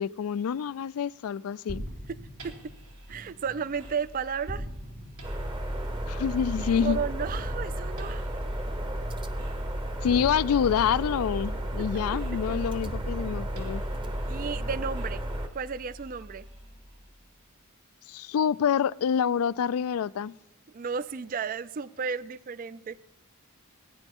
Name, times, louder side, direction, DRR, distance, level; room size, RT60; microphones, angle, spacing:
voice 1, 0.0-1.8 6.1-7.0 10.0-13.8 18.1-20.3, left 8 dB, 75° left, 0.3 m, -27 dB
sound 1, 1.7-17.3, equal, 80° right, 2.6 m, -43 dB
voice 2, 3.1-4.7 6.8-8.3 12.5-12.6 14.0-15.2 15.5-16.5 20.7-23.0, right 6 dB, 40° right, 0.3 m, -33 dB
sound 2, 5.2-15.5, equal, 20° right, 0.8 m, -33 dB
18.5 x 10.0 x 3.6 m
head